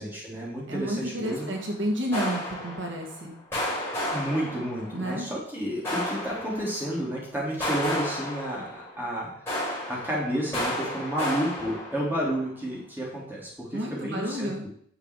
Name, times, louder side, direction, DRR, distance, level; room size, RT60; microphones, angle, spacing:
voice 1, 0.0-1.5 4.1-9.3 9.6-14.5, equal, 10° right, -5 dB, 3.7 m, -31 dB
voice 2, 0.7-3.3 4.9-5.3 13.7-14.6, equal, 75° right, 1 dB, 2.1 m, -31 dB
sound 1, 1.2-1.7 2.1-3.2 3.5-5.1 5.8-7.0 7.6-9.1 9.5-12.4, left 1 dB, 15° left, 4.9 m, -32 dB
9.9 x 7.1 x 4.9 m, 0.62 s
head